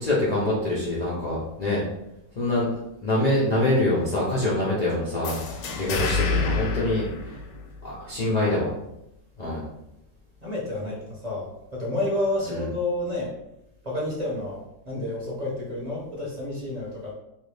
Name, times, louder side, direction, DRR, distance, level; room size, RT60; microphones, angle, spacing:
voice 1, 0.0-1.8 2.4-2.7 3.0-5.4 5.8-7.4 7.8-8.7 9.4-9.7 12.5-12.7, left 1 dB, 60° left, -7 dB, 0.4 m, -25 dB
sound 1, 5.2-8.0, left 4 dB, 85° left, 1.3 m, -28 dB
voice 2, 10.4-13.3 13.8-17.1, left 1 dB, 35° right, -5 dB, 0.7 m, -30 dB
3.1 x 2.6 x 3.3 m, 0.85 s
omnidirectional pair, 1.8 m